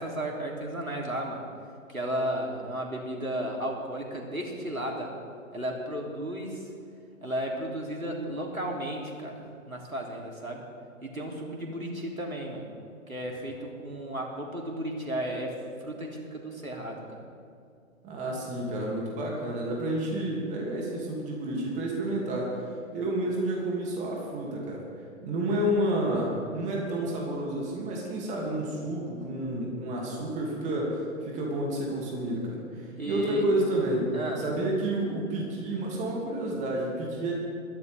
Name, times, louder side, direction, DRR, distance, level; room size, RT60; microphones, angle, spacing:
voice 1, 0.0-1.4 1.9-5.1 5.5-6.7 7.2-10.6 11.0-12.7 13.1-17.2 33.0-33.5 34.1-34.4, right 1 dB, 85° right, 0 dB, 3.3 m, -34 dB
voice 2, 18.0-22.6 22.9-24.9 25.2-37.3, right 1 dB, 15° right, -2 dB, 2.6 m, -30 dB
21.5 x 15.0 x 3.6 m, 2.3 s
figure-of-eight pair, 125°, 41 cm